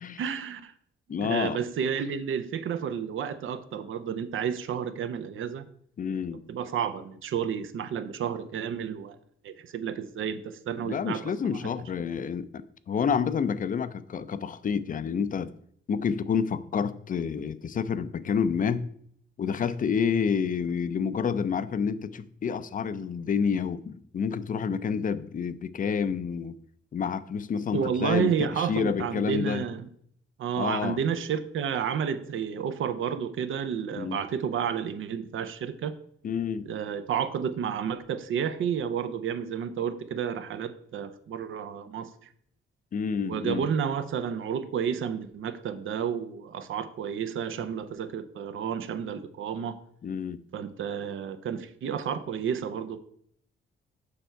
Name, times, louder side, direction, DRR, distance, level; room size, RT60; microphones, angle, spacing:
voice 1, 0.2-0.7 1.2-5.6 6.5-9.2 9.4-11.6 27.7-29.9 30.4-35.9 36.7-42.1 43.2-49.8 50.5-53.0, right 7 dB, 70° right, 0.6 m, -31 dB
voice 2, 1.1-1.6 6.0-6.4 10.8-15.5 15.9-18.9 19.4-26.6 26.9-29.7 30.6-31.0 34.0-34.2 36.2-36.7 42.9-43.7 50.0-50.4, left 6 dB, 40° left, 0.5 m, -29 dB
6.9 x 5.4 x 4.5 m
cardioid pair, 110°, 21 cm